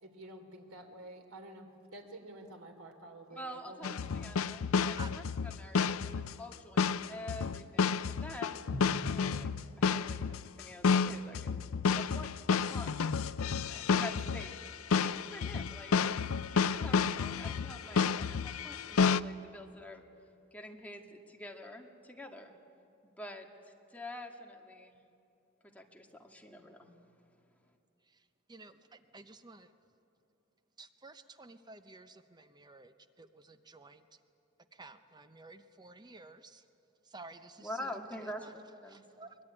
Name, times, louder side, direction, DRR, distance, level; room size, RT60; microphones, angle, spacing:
voice 1, 0.0-3.9, right 1 dB, 90° right, 5 dB, 3.2 m, -50 dB
voice 2, 3.3-5.2 5.5-9.5 9.8-11.7 11.9-12.9 13.6-14.7 15.0-15.9 16.5-20.0 20.5-22.6 23.0-23.5 23.9-25.0 25.6-26.9 37.6-39.1, left 1 dB, 5° left, 2 dB, 1.9 m, -47 dB
sound 1, 3.8-19.2, left 5 dB, 75° left, 0.5 m, -31 dB
Drum, 8.7-10.9, equal, 55° right, 4.7 m, -45 dB
voice 3, 28.1-29.7 30.8-34.0 34.7-36.6 37.0-38.5 38.9-39.4, right 3 dB, 20° right, 10 dB, 0.8 m, -53 dB
23.0 x 22.0 x 9.9 m, 2.6 s
head